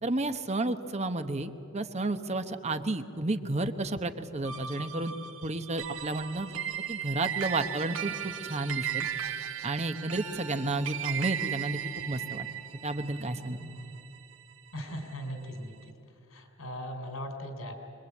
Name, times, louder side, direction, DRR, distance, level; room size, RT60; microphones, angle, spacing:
voice 1, 0.0-6.6 6.9-9.1 9.6-11.8 12.1-12.5 12.8-13.6, right 2 dB, 30° right, 9 dB, 1.0 m, -32 dB
sound 1, 4.4-15.1, right 10 dB, 85° right, 2.2 m, -37 dB
voice 2, 13.6-14.0 14.7-15.9 16.3-17.7, equal, 85° left, 6 dB, 3.8 m, -39 dB
25.0 x 22.0 x 8.5 m, 2.9 s
head